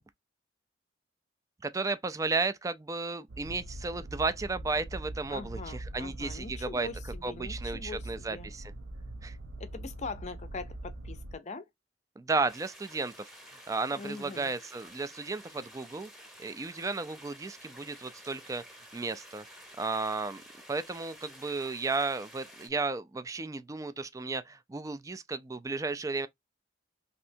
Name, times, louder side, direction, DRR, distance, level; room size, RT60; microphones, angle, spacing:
voice 1, 1.6-6.9 7.2-8.7 9.2-9.4 12.2-16.1 16.4-18.6 18.9-19.4 19.8-20.4 20.7-26.3, right 3 dB, 20° right, 0.3 m, -34 dB
sound 1, 3.3-11.4, right 1 dB, 80° right, 0.6 m, -42 dB
voice 2, 5.3-8.5 9.6-11.6 14.0-14.5, left 4 dB, 40° left, 0.5 m, -42 dB
sound 2, 12.5-22.7, equal, ahead, 0.9 m, -52 dB
3.2 x 2.7 x 2.5 m
head